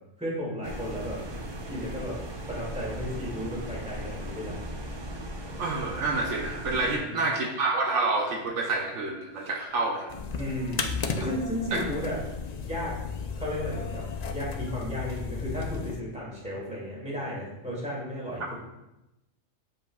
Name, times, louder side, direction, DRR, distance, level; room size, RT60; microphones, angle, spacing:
voice 1, 0.2-1.2 1.7-2.2 2.5-4.6 7.0-7.3 9.4-9.5 10.4-12.2 12.6-13.0 13.3-14.0 14.3-18.5, equal, 5° right, -6 dB, 2.2 m, -34 dB
sound 1, 0.6-7.0, equal, 30° right, 0.5 m, -38 dB
voice 2, 5.6-10.1 11.7-11.8, right 3 dB, 70° right, 1 dB, 1.0 m, -28 dB
sound 2, 10.1-16.0, left 5 dB, 65° left, 0.4 m, -34 dB
8.4 x 5.2 x 2.3 m, 0.94 s
omnidirectional pair, 1.3 m